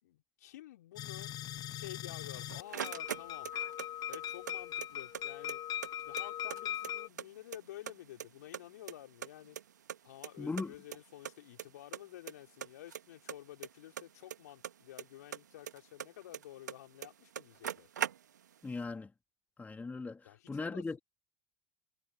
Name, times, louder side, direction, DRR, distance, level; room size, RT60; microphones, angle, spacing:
voice 1, 0.0-1.3 1.7-3.5 4.1-5.6 6.0-9.6 10.0-17.9 20.2-21.0, left 14 dB, 70° left, 4.2 m, -51 dB
sound 1, 1.0-7.1, left 12 dB, 45° left, 1.1 m, -40 dB
sound 2, 2.1-3.9 4.1-5.2 5.5-5.6 5.8-7.3 7.5-8.3 8.5-10.0 10.2-10.3 10.6-10.7 10.9-11.0 11.2-11.7 11.9-12.3 12.6-15.0 15.3-16.8 17.0-17.1 17.3-18.6, right 9 dB, 80° right, 1.6 m, -40 dB
voice 2, 10.4-10.7 18.6-19.1 19.6-21.0, left 3 dB, 15° left, 2.4 m, -39 dB
figure-of-eight pair, 70°, 9 cm